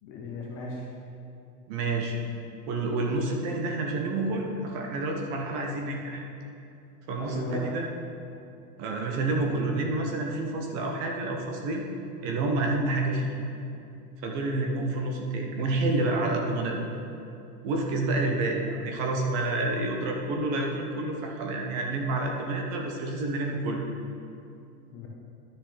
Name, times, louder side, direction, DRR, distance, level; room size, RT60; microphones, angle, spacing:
voice 1, 0.0-0.9 7.2-7.8 24.9-25.1, left 1 dB, 25° left, -2 dB, 0.5 m, -36 dB
voice 2, 1.7-2.2 2.7-6.2 7.1-7.8 8.8-11.9 12.2-13.3 14.2-16.8 17.6-23.8, right 2 dB, 25° right, 1 dB, 0.6 m, -29 dB
11.0 x 6.3 x 3.2 m, 2.6 s
supercardioid pair, 160°, 46 cm